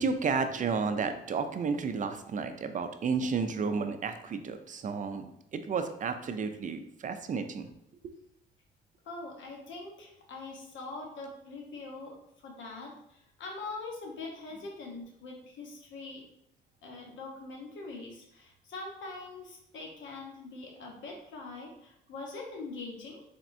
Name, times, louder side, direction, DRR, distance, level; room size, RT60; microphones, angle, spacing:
voice 1, 0.0-7.7 8.0-8.1, right 5 dB, 40° right, 8 dB, 0.4 m, -32 dB
voice 2, 9.0-12.2 12.4-16.2 16.8-23.2, left 3 dB, 75° left, 0 dB, 1.0 m, -43 dB
4.1 x 3.5 x 2.6 m, 0.76 s
cardioid pair, 90°, 20 cm